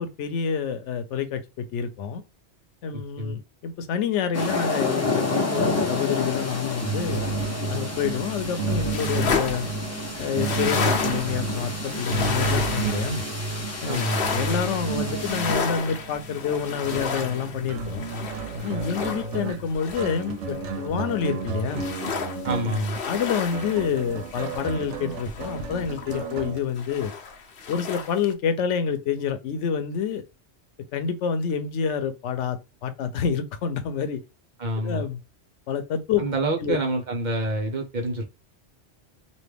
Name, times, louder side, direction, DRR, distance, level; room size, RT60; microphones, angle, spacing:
voice 1, 0.0-2.2 2.8-7.3 7.7-9.7 10.2-13.2 13.8-18.1 18.6-21.9 22.6-27.1 27.7-30.2 30.9-34.2 34.8-35.2 35.7-36.2 36.6-36.8, left 7 dB, 90° left, 0.9 m, -28 dB
sound 1, 4.3-15.4, left 3 dB, 15° left, 0.7 m, -30 dB
sound 2, 6.8-26.6, right 4 dB, 80° right, 0.9 m, -31 dB
sound 3, 8.6-20.8 21.1-26.5 26.8-28.3, left 5 dB, 60° left, 0.9 m, -32 dB
voice 2, 13.9-14.3 22.4-23.0 34.6-35.1 36.2-38.2, right 2 dB, 45° right, 0.8 m, -27 dB
3.1 x 2.6 x 3.3 m
omnidirectional pair, 1.2 m